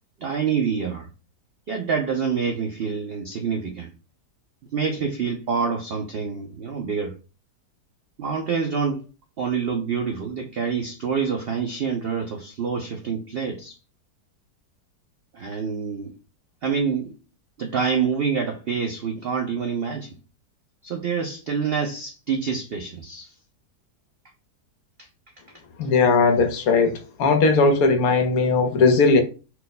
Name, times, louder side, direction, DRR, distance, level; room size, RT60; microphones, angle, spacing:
voice 1, 0.2-1.1 1.7-3.9 4.7-7.1 8.2-9.1 9.4-13.8 15.3-16.1 16.6-17.1 17.6-20.1 20.8-23.3 25.0-25.1, right 6 dB, 85° right, 0.5 m, -26 dB
voice 2, 25.8-29.2, left 4 dB, 65° left, 1.1 m, -18 dB
4.4 x 2.1 x 4.0 m
omnidirectional pair, 1.8 m